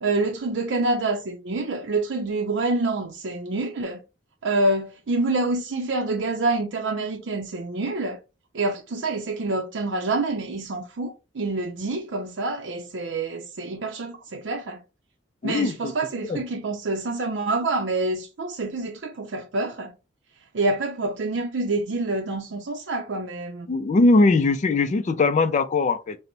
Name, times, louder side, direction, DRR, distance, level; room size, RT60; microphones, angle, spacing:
voice 1, 0.0-4.0 4.4-8.2 8.5-14.8 15.4-19.9 20.5-23.7, right 2 dB, 75° right, 0.5 m, -27 dB
voice 2, 15.4-15.9 16.3-16.4 23.7-26.2, left 3 dB, 40° left, 0.3 m, -20 dB
3.9 x 2.1 x 4.4 m
head